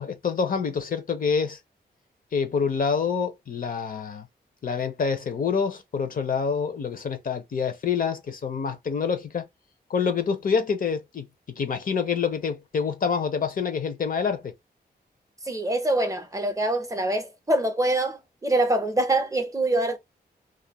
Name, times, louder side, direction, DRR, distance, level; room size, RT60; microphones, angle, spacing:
voice 1, 0.0-1.6 2.3-4.3 4.6-9.5 9.9-11.3 11.6-14.5, left 6 dB, 55° left, 0.6 m, -27 dB
voice 2, 15.4-20.0, right 1 dB, 20° right, 0.5 m, -24 dB
2.4 x 2.1 x 2.9 m
wide cardioid pair, 125°, 17 cm